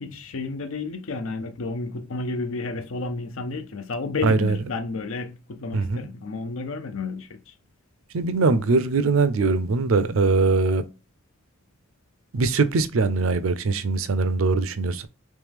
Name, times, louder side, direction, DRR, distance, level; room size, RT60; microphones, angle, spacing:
voice 1, 0.0-7.5, left 3 dB, 80° left, 0.6 m, -31 dB
voice 2, 4.2-4.6 5.7-6.1 8.1-10.8 12.3-15.1, right 3 dB, 75° right, 0.5 m, -21 dB
3.2 x 3.1 x 3.5 m
head